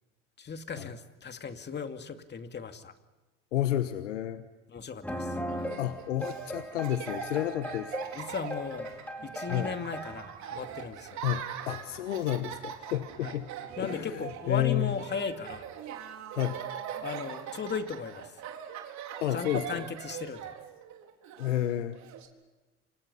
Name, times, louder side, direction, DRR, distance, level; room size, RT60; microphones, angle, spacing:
voice 1, 0.4-2.9 4.7-5.4 8.1-8.9 9.2-11.2 13.2-13.3 13.8-15.6 17.0-18.4 19.3-20.5, left 5 dB, 30° left, 7 dB, 2.4 m, -37 dB
voice 2, 3.5-4.4 5.8-7.9 9.5-9.7 11.2-13.5 13.8-14.9 16.3-16.6 19.2-19.8 21.4-22.0, left 12 dB, 85° left, 10 dB, 1.3 m, -31 dB
sound 1, 5.0-10.3, equal, 5° left, 4.9 m, -38 dB
Laughter, 5.5-22.3, right 9 dB, 50° right, 4.1 m, -42 dB
29.0 x 25.5 x 5.6 m, 1.2 s
hypercardioid pair, 80°, 36 cm